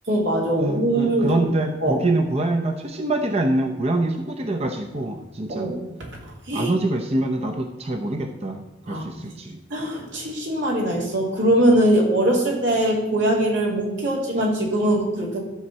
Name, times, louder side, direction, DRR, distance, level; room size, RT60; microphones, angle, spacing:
voice 1, 0.1-1.3 1.8-2.0 5.5-5.8 6.2-6.7 8.8-9.1 9.7-15.4, right 1 dB, 80° right, -2 dB, 3.0 m, -21 dB
voice 2, 0.6-5.7 6.5-9.6, right 2 dB, 35° right, 3 dB, 0.8 m, -25 dB
12.5 x 4.4 x 7.5 m, 1.0 s
head